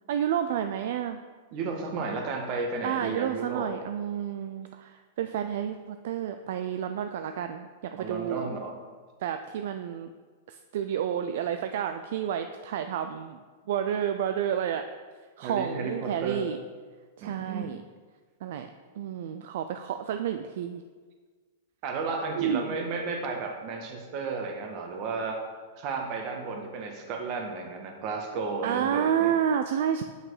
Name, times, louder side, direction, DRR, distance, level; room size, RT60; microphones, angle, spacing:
voice 1, 0.1-1.2 2.8-8.5 9.2-10.1 10.5-13.4 13.7-14.8 15.4-16.6 17.2-17.8 18.4-18.7 19.0-20.8 22.4-22.9 28.6-30.0, right 9 dB, 65° right, 8 dB, 0.4 m, -30 dB
voice 2, 1.5-3.7 8.0-8.8 15.4-16.5 17.2-17.7 21.8-25.4 25.8-29.4, right 4 dB, 45° right, 3 dB, 1.6 m, -33 dB
8.3 x 5.9 x 4.9 m, 1.5 s
hypercardioid pair, 130°, 0 cm